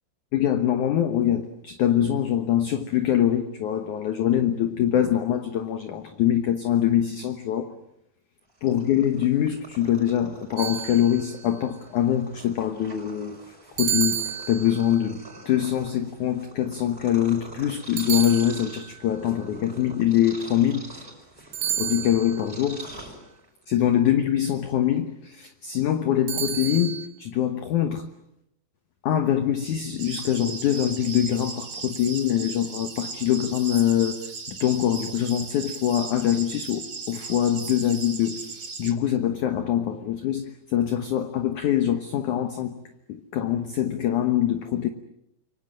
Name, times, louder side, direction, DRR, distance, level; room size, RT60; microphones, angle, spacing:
voice 1, 0.3-7.8 8.6-13.4 13.7-20.9 21.8-22.9 23.7-28.1 29.0-42.8 43.1-44.9, left 10 dB, 65° left, 2.1 m, -24 dB
Purr, 8.5-23.7, right 1 dB, 15° right, 5.3 m, -45 dB
sound 1, 10.6-11.5 13.8-15.0 18.0-19.0 21.5-22.5 26.3-27.1, right 9 dB, 85° right, 4.5 m, -30 dB
sound 2, 30.0-38.9, right 5 dB, 40° right, 2.3 m, -37 dB
28.0 x 24.5 x 7.7 m
omnidirectional pair, 4.9 m